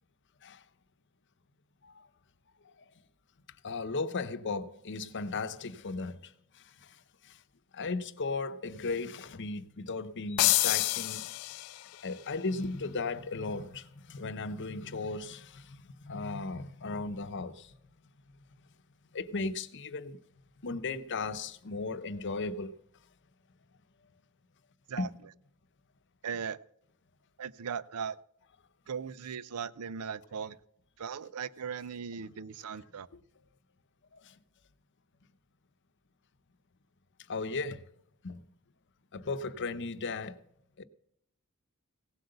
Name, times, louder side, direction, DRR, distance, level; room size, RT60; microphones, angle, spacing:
voice 1, 3.6-6.3 6.6-7.0 7.2-7.4 7.7-11.3 12.0-17.7 19.1-20.2 20.6-22.7 25.0-25.2 34.1-34.4 37.3-37.8 38.2-38.4 39.1-40.4 40.8-40.9, left 3 dB, 55° left, 0.8 m, -36 dB
sound 1, 10.4-12.0, left 18 dB, 85° left, 0.4 m, -28 dB
voice 2, 26.2-26.6 27.4-28.2 28.9-30.6 31.0-33.1, right 6 dB, 90° right, 0.5 m, -38 dB
17.0 x 7.9 x 6.6 m
head